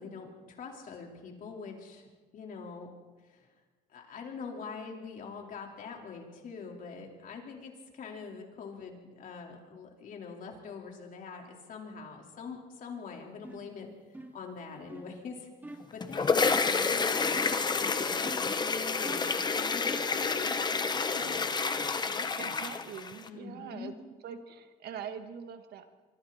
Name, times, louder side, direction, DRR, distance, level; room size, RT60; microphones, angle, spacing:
voice 1, 0.0-2.9 3.3-3.5 3.9-13.9 14.3-21.4 22.0-22.7 23.3-23.9, left 5 dB, 55° left, 0 dB, 4.4 m, -44 dB
sound 1, 13.4-13.7 14.1-14.5 14.9-15.2 15.6-16.0 17.3-17.7 18.2-18.6 19.0-19.4 19.9-20.2, right 1 dB, 10° right, 2.9 m, -45 dB
sound 2, 15.8-23.3, left 4 dB, 25° left, 1.1 m, -29 dB
voice 2, 22.4-23.9 24.2-25.9, right 8 dB, 70° right, 7 dB, 1.9 m, -43 dB
25.5 x 24.5 x 4.4 m, 1.3 s
cardioid pair, 110°, 17 cm